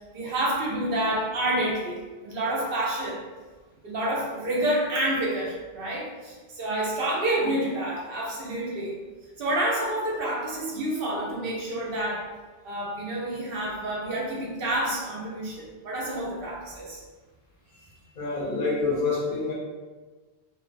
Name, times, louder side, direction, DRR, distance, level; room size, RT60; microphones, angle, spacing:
voice 1, 0.1-3.2 3.8-9.0 9.4-12.3 12.6-17.0 17.7-17.8, right 1 dB, 65° right, -4 dB, 0.7 m, -28 dB
voice 2, 18.2-19.5, left 3 dB, 60° left, -4 dB, 0.6 m, -27 dB
2.5 x 2.0 x 2.5 m, 1.3 s
omnidirectional pair, 1.1 m